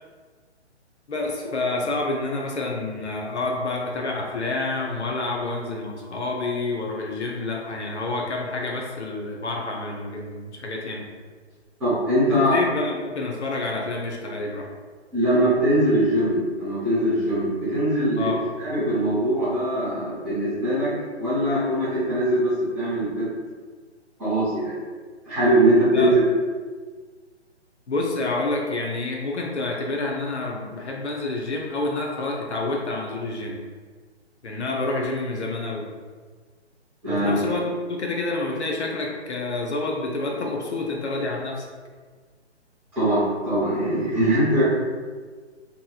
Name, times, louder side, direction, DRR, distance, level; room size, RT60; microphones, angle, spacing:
voice 1, 1.1-11.1 12.5-14.7 18.2-18.4 25.9-26.2 27.9-33.6 34.4-35.9 37.1-41.7, left 2 dB, 70° left, -1 dB, 0.6 m, -28 dB
voice 2, 11.8-12.6 15.1-18.3 18.6-20.9 21.2-23.1 24.2-24.8 25.2-26.1 37.0-37.3 42.9-44.6, right 1 dB, 5° right, -17 dB, 0.5 m, -21 dB
2.8 x 2.6 x 2.3 m, 1.5 s
figure-of-eight pair, 135°, 35 cm